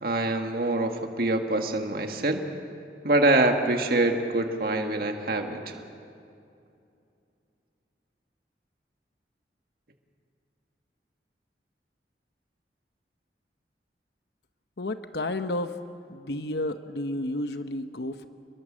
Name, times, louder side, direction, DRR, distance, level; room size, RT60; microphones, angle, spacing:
voice 1, 0.0-2.4 3.0-5.8, right 2 dB, 55° right, 4 dB, 1.9 m, -25 dB
voice 2, 14.8-15.7 16.1-18.3, left 1 dB, 70° left, 9 dB, 1.0 m, -31 dB
29.0 x 22.0 x 7.5 m, 2.5 s
head